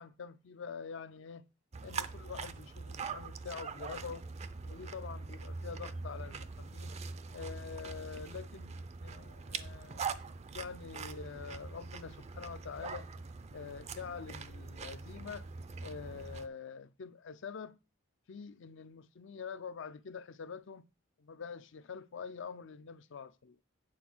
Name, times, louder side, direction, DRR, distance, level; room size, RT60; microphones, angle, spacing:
voice 1, 0.0-1.5 1.8-4.2 4.6-6.9 7.3-10.1 10.5-13.1 13.5-15.5 15.8-17.7 18.3-20.8 21.2-23.6, left 6 dB, 65° left, 0.5 m, -45 dB
sound 1, 1.7-16.5, right 4 dB, 30° right, 0.4 m, -43 dB
8.9 x 4.1 x 6.1 m
head